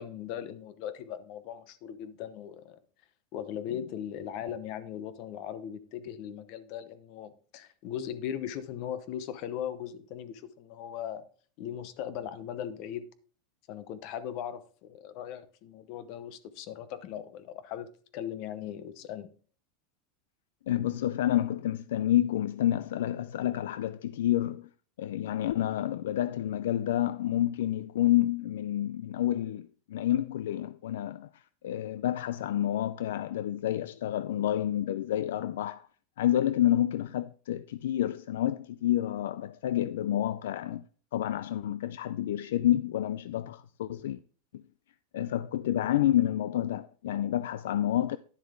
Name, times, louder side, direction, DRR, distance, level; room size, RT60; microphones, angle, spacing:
voice 1, 0.0-2.8 3.3-11.2 11.6-13.1 13.7-19.3, left 9 dB, 50° left, 0.8 m, -39 dB
voice 2, 20.7-24.7 25.0-35.9 36.2-40.8 41.1-44.2 44.5-44.6 45.1-48.2, left 12 dB, 85° left, 0.3 m, -29 dB
10.5 x 7.0 x 3.7 m
supercardioid pair, 145°, 0 cm